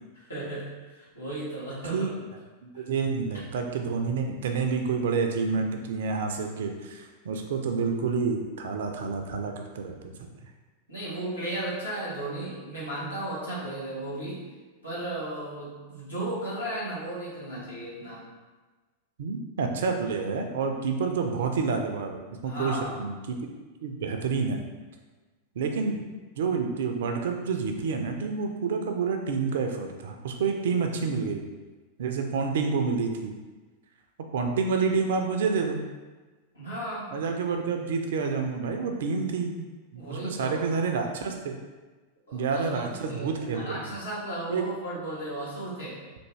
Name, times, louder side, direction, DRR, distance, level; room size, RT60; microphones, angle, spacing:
voice 1, 0.3-2.1 2.7-2.8 10.9-14.5 14.8-18.3 22.4-22.9 36.5-37.2 39.9-40.6 42.3-46.0, right 1 dB, 80° left, -9 dB, 1.5 m, -35 dB
voice 2, 2.6-10.3 19.2-23.4 23.8-24.6 25.6-26.0 26.4-31.5 32.0-33.4 34.3-35.8 37.1-39.7 39.9-41.6 42.3-43.8 44.5-44.7, right 5 dB, 60° right, 4 dB, 0.4 m, -28 dB
3.4 x 2.5 x 3.1 m, 1.3 s
figure-of-eight pair, 90°, 0 cm